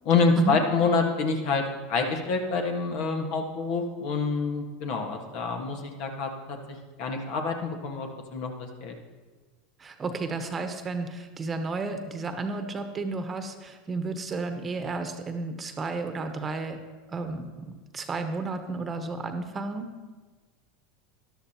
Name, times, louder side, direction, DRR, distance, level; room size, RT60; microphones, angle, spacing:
voice 1, 0.0-1.6 1.9-6.6 7.0-8.5 8.8-8.9, left 4 dB, 60° left, 3 dB, 1.7 m, -27 dB
voice 2, 9.8-16.8 17.1-19.9, right 3 dB, 25° right, 7 dB, 1.1 m, -32 dB
13.5 x 11.5 x 3.0 m, 1.3 s
hypercardioid pair, 95°, 0 cm